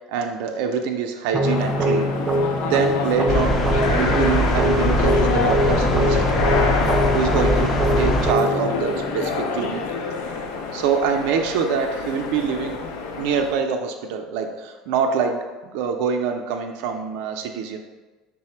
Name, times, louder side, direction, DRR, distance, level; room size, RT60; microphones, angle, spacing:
voice 1, 0.1-2.1 2.6-3.6 3.9-6.7 7.1-9.8 10.7-12.8 13.2-15.4 15.7-17.8, right 6 dB, 70° right, 4 dB, 0.4 m, -25 dB
sound 1, 1.3-10.3, equal, 20° right, 0.5 m, -24 dB
sound 2, 1.4-13.6, left 4 dB, 80° left, 0.5 m, -28 dB
sound 3, 3.3-8.3, left 1 dB, 30° left, 0.5 m, -22 dB
5.6 x 2.0 x 4.3 m, 1.3 s
supercardioid pair, 130°, 0 cm